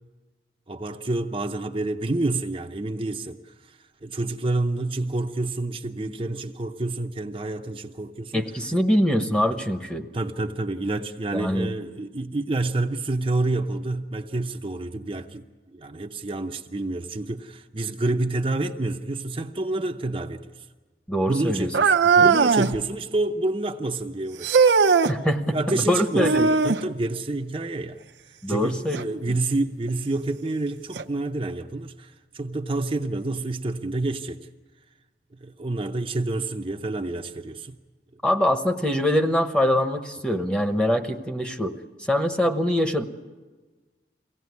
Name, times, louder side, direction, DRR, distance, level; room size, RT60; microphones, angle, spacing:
voice 1, 0.7-8.4 10.1-15.5 15.7-20.6 21.3-21.9 22.2-24.8 25.5-28.0 28.5-34.5 35.4-37.7, right 2 dB, 30° right, 0.6 m, -28 dB
voice 2, 8.3-10.1 11.3-11.7 21.1-21.7 22.2-22.3 25.1-26.5 28.4-29.0 29.3-29.4 38.2-43.0, equal, 5° left, 1.0 m, -24 dB
sound 1, 21.7-22.8 24.4-25.2 26.2-26.9 28.9-29.0 29.9-30.0 30.9-31.0, right 5 dB, 85° right, 0.7 m, -19 dB
23.0 x 17.0 x 9.5 m
head